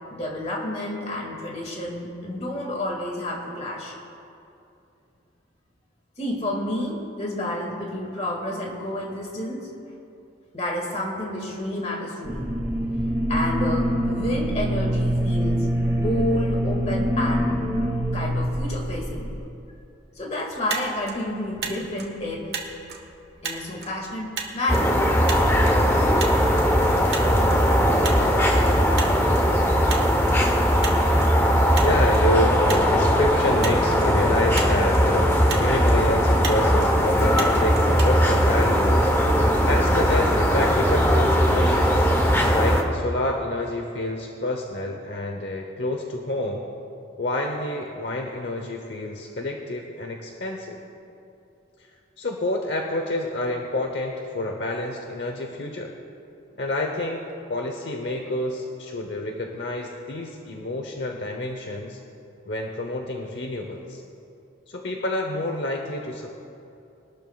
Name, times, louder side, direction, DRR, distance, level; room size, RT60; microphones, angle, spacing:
voice 1, 0.1-4.0 6.2-9.7 10.5-12.5 13.3-17.6 18.1-19.3 20.2-22.5 23.4-25.0 32.2-32.3, left 1 dB, 35° left, -1 dB, 2.0 m, -30 dB
sound 1, 12.2-19.4, equal, 10° right, 1.9 m, -24 dB
Motor vehicle (road), 20.5-39.0, right 5 dB, 55° right, 1.4 m, -37 dB
sound 2, 24.7-42.8, equal, 10° left, 0.9 m, -19 dB
voice 2, 31.8-39.1 39.6-42.1 42.5-46.7 47.2-50.8 52.2-55.9 56.6-62.0 62.5-64.0 64.7-66.3, left 1 dB, 60° left, 2 dB, 0.9 m, -28 dB
22.0 x 12.5 x 2.4 m, 2.7 s
head